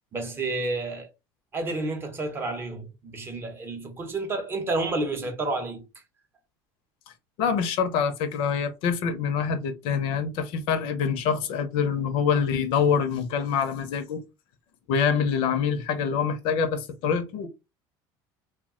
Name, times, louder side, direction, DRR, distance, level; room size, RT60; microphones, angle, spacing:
voice 1, 0.1-1.1 1.5-5.8, right 2 dB, 20° right, 0.6 m, -30 dB
voice 2, 7.4-14.2 14.9-17.5, left 6 dB, 60° left, 0.5 m, -25 dB
2.3 x 2.1 x 3.5 m
cardioid pair, 155°, 10 cm